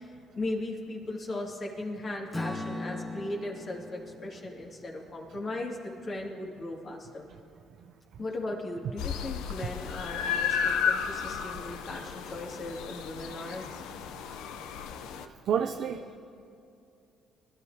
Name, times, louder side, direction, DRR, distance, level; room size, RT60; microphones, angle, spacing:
voice 1, 0.0-7.3 8.2-13.6, left 2 dB, 45° left, -1 dB, 2.3 m, -37 dB
Strum, 2.3-6.5, left 2 dB, 5° left, 2.1 m, -40 dB
sound 1, 9.0-15.2, left 7 dB, 85° left, 0.6 m, -33 dB
voice 2, 15.2-16.2, right 8 dB, 65° right, 6 dB, 0.5 m, -30 dB
21.5 x 12.0 x 2.8 m, 2.5 s
supercardioid pair, 75°, 0 cm